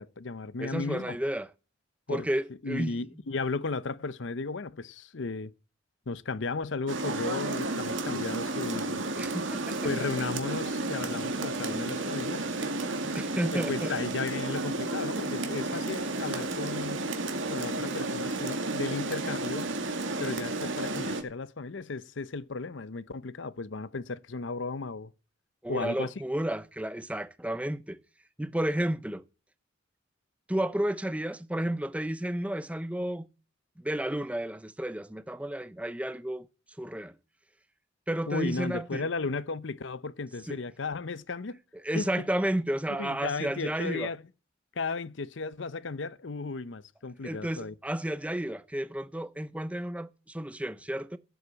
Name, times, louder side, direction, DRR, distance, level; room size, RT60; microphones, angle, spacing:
voice 1, 0.0-1.2 2.1-2.3 2.6-5.5 6.1-9.0 9.8-12.5 13.5-17.1 17.5-19.7 20.2-25.1 25.7-26.1 38.3-41.6 41.9-42.2 43.0-44.2 44.8-47.7, left 3 dB, 65° left, 0.7 m, -35 dB
voice 2, 0.6-1.5 2.1-3.1 9.2-9.9 12.0-12.3 13.1-13.9 25.6-28.0 28.4-29.2 30.5-33.3 33.8-36.5 36.8-37.1 38.1-39.1 40.5-40.6 41.8-44.1 47.2-51.2, right 1 dB, 5° right, 0.7 m, -32 dB
Rain, 6.9-21.2, right 2 dB, 75° right, 2.3 m, -32 dB
sound 1, 11.0-18.7, right 1 dB, 25° right, 3.1 m, -51 dB
14.5 x 8.1 x 8.3 m
head